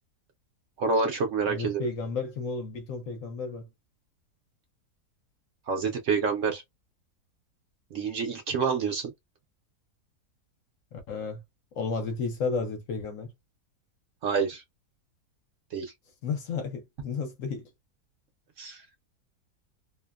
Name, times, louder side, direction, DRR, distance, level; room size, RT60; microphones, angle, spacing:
voice 1, 0.8-1.8 5.7-6.6 7.9-9.1 14.2-14.6 15.7-15.9 18.6-18.8, right 5 dB, 65° right, 0.8 m, -28 dB
voice 2, 1.5-3.7 10.9-11.4 11.7-13.3 16.2-17.7, left 4 dB, 65° left, 1.0 m, -32 dB
2.7 x 2.1 x 2.3 m
omnidirectional pair, 1.7 m